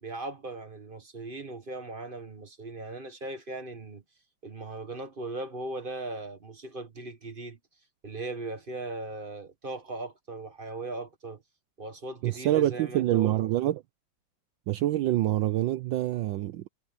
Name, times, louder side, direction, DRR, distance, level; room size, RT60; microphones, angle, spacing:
voice 1, 0.0-4.0 4.4-7.6 8.0-11.4 11.8-13.4, right 2 dB, 30° right, 1.3 m, -38 dB
voice 2, 12.2-13.8 14.7-16.7, right 14 dB, 75° right, 1.3 m, -26 dB
omnidirectional pair, 2.2 m